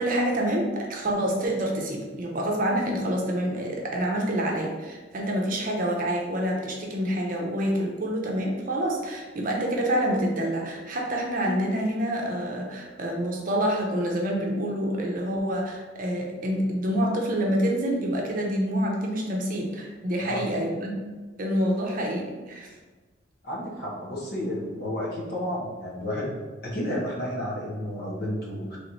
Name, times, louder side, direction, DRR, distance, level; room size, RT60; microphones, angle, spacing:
voice 1, 0.0-21.0 21.4-22.7, equal, 45° right, -1 dB, 0.7 m, -27 dB
voice 2, 23.4-26.4 26.6-28.8, left 1 dB, 50° left, -4 dB, 1.1 m, -31 dB
3.4 x 3.1 x 4.0 m, 1.3 s
head